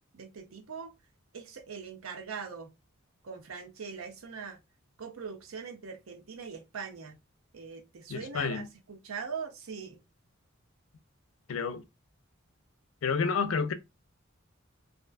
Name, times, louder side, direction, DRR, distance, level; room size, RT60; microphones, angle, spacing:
voice 1, 0.1-0.9 1.3-2.7 3.2-4.6 5.0-7.1 7.5-10.0, right 5 dB, 90° right, 0.6 m, -41 dB
voice 2, 8.1-8.7 11.5-11.8 13.0-13.7, left 5 dB, 70° left, 0.4 m, -29 dB
2.4 x 2.2 x 2.3 m
head